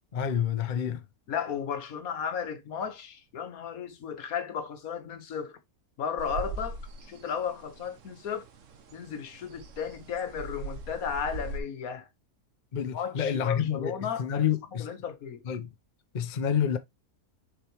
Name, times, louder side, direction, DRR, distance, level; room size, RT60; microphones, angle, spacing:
voice 1, 0.1-1.0 12.7-13.9 14.2-14.9 15.5-15.7 16.1-16.8, left 8 dB, 40° left, 0.7 m, -28 dB
voice 2, 1.3-5.6 6.0-8.5 8.9-12.1 12.9-14.5 14.8-15.4, left 7 dB, 80° left, 1.5 m, -34 dB
sound 1, 6.2-11.6, right 3 dB, 60° right, 1.3 m, -41 dB
6.8 x 4.9 x 3.0 m
omnidirectional pair, 1.5 m